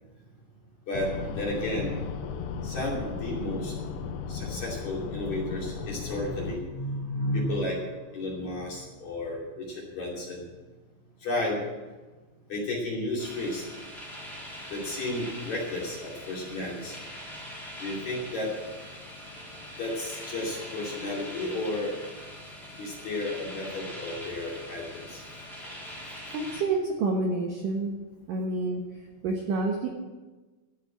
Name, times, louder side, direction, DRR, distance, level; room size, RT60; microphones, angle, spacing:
sound 1, 0.9-6.6, left 6 dB, 80° left, 3.3 m, -35 dB
voice 1, 1.3-2.0 2.6-4.0 4.3-7.8 8.1-10.5 11.2-11.6 12.5-13.6 14.7-17.0 17.8-18.5 19.8-22.0 22.8-25.2, left 1 dB, 40° left, -4 dB, 3.4 m, -32 dB
sound 2, 13.2-26.6, equal, ahead, 2.2 m, -42 dB
voice 2, 26.3-27.9 28.3-28.8 29.2-29.9, right 3 dB, 75° right, 1 dB, 2.0 m, -28 dB
14.5 x 6.6 x 8.5 m, 1.2 s
omnidirectional pair, 5.8 m